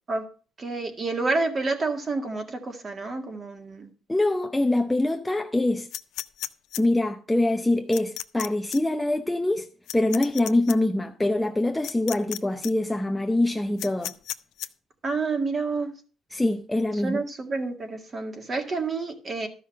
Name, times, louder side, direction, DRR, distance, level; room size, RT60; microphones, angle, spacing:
voice 1, 0.6-3.9 15.0-15.9 17.0-19.5, right 3 dB, 25° right, 1.9 m, -29 dB
voice 2, 4.1-5.9 6.8-9.7 9.9-14.1 16.3-17.2, left 2 dB, 5° left, 0.6 m, -24 dB
sound 1, 5.9-6.8 7.9-8.5 8.7-8.8 9.9-10.8 11.8-12.4 12.6-12.7 13.8-14.7, left 14 dB, 80° left, 0.6 m, -33 dB
13.0 x 5.6 x 6.4 m
cardioid pair, 150°, 0 cm